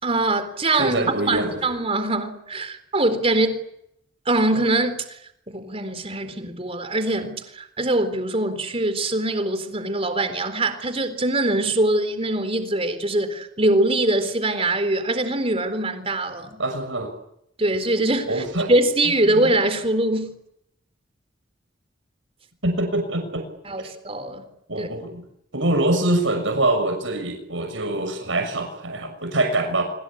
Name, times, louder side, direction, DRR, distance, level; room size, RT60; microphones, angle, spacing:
voice 1, 0.0-1.0 1.3-3.6 4.3-4.9 5.5-16.6 17.6-20.3 23.6-24.5 24.8-24.9, right 2 dB, 30° right, 4.0 m, -23 dB
voice 2, 0.8-1.6 16.6-17.1 18.3-18.7 19.3-19.5 22.6-23.5 24.7-25.2 25.5-29.8, right 2 dB, 80° right, 6.4 m, -24 dB
26.0 x 26.0 x 8.8 m
head